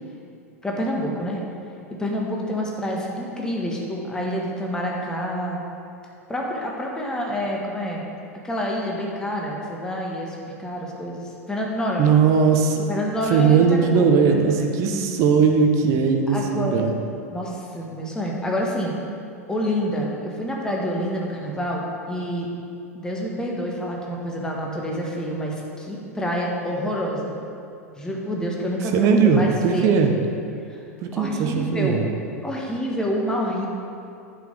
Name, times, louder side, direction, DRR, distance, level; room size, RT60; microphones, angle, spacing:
voice 1, 0.6-1.4 1.9-5.6 6.3-8.1 8.4-12.1 12.9-14.7 16.3-16.9 17.3-18.9 19.5-22.5 22.9-27.4 28.0-29.9 30.7-30.8 31.1-32.1 32.4-33.7, equal, 10° left, -2 dB, 1.6 m, -28 dB
voice 2, 12.0-12.9 13.3-16.9 28.9-30.1 31.0-32.1, right 5 dB, 40° right, 4 dB, 1.1 m, -19 dB
10.5 x 5.4 x 6.8 m, 2.6 s
figure-of-eight pair, 90°, 8 cm